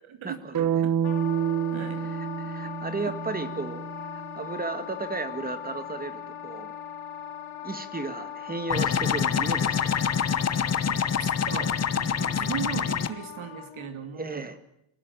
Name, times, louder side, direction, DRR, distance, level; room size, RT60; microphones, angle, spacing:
voice 1, 0.2-0.9 2.0-6.7 7.6-10.0 14.1-14.6, right 3 dB, 15° right, 10 dB, 1.9 m, -35 dB
sound 1, 0.5-4.6, right 8 dB, 40° right, 1.3 m, -29 dB
Wind instrument woodwind instrument, 1.0-13.9, left 9 dB, 70° left, 4.6 m, -40 dB
voice 2, 1.7-2.1 2.6-2.7 3.0-3.1 10.9-14.5, right 8 dB, 70° right, 9 dB, 3.2 m, -38 dB
sound 2, 8.7-13.1, left 7 dB, 30° left, 1.0 m, -26 dB
27.0 x 18.0 x 9.0 m, 0.78 s
wide cardioid pair, 175°, 50 cm